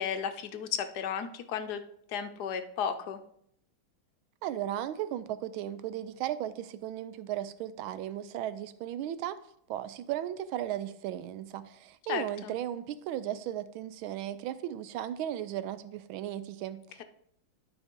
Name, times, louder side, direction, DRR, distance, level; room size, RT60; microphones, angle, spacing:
voice 1, 0.0-1.8 2.1-3.2 12.1-12.5, left 7 dB, 70° left, 8 dB, 1.0 m, -34 dB
voice 2, 4.4-9.4 9.7-17.0, right 11 dB, 80° right, 14 dB, 1.4 m, -36 dB
12.0 x 4.9 x 3.7 m, 0.69 s
omnidirectional pair, 2.3 m